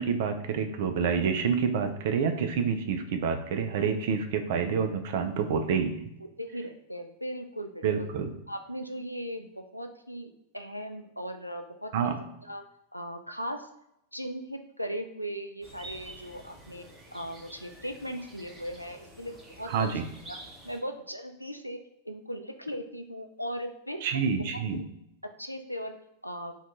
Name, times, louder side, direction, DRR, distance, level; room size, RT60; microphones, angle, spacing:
voice 1, 0.0-6.0 7.8-8.3 11.9-12.2 19.7-20.0 24.0-24.8, right 6 dB, 50° right, 8 dB, 0.4 m, -28 dB
voice 2, 6.4-8.1 8.5-12.2 12.4-12.6 12.9-13.7 14.1-16.8 17.1-19.9 20.3-20.4 20.6-21.8 22.0-24.3 25.4-25.9 26.2-26.6, equal, 90° left, 5 dB, 0.3 m, -38 dB
sound 1, 15.6-20.8, right 2 dB, 10° right, 0.8 m, -48 dB
2.6 x 2.3 x 3.6 m, 0.79 s
figure-of-eight pair, 90°, 0 cm